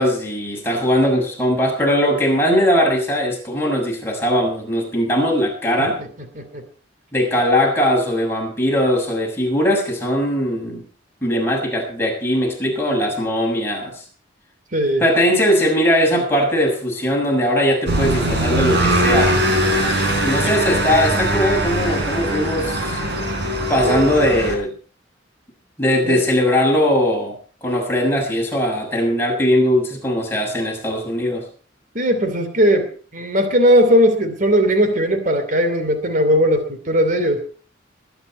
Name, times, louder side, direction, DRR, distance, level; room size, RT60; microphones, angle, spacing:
voice 1, 0.0-6.0 7.1-10.8 11.2-14.0 15.0-19.3 20.2-23.0 23.7-24.7 25.8-31.4, equal, 10° left, -2 dB, 6.9 m, -19 dB
voice 2, 14.7-15.0 23.9-24.1 26.0-26.2 31.9-37.4, equal, 45° right, 7 dB, 2.9 m, -18 dB
sound 1, 17.9-24.6, right 1 dB, 65° right, 4.6 m, -20 dB
21.0 x 10.5 x 4.4 m, 0.41 s
head